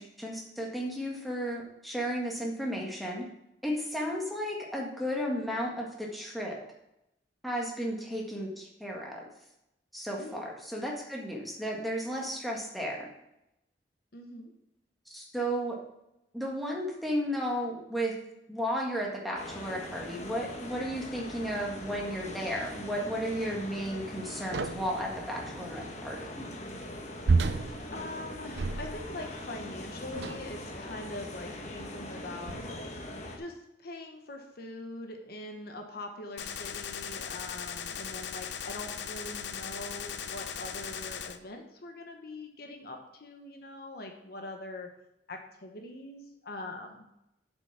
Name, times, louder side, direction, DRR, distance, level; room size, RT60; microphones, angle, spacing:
voice 1, 0.0-3.2 3.6-6.6 7.4-9.2 9.9-13.1 15.1-15.8 16.3-18.1 18.5-26.4, equal, ahead, -3 dB, 1.7 m, -34 dB
voice 2, 10.2-10.5 12.1-12.2 14.1-14.5 27.9-32.9 33.4-44.9 45.3-47.0, left 2 dB, 55° left, 4 dB, 1.1 m, -43 dB
sound 1, 19.4-33.4, left 1 dB, 40° left, 1.3 m, -42 dB
sound 2, 24.5-25.0 27.3-29.2 30.1-30.6 31.5-31.6 32.5-32.9, right 4 dB, 70° right, 0.5 m, -30 dB
Gunshot gunfire, 36.4-41.4, left 7 dB, 75° left, 0.7 m, -38 dB
7.7 x 6.0 x 5.9 m, 0.85 s
head